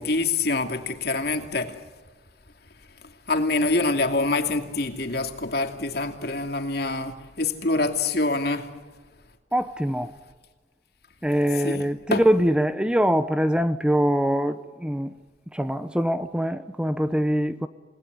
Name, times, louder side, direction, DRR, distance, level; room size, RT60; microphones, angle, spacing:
voice 1, 0.0-1.7 3.3-8.7 11.6-11.8 12.1-12.2, left 3 dB, 60° left, 2.6 m, -25 dB
voice 2, 9.5-10.1 11.2-15.1 15.5-17.7, equal, 5° right, 0.8 m, -23 dB
29.0 x 19.5 x 9.6 m
head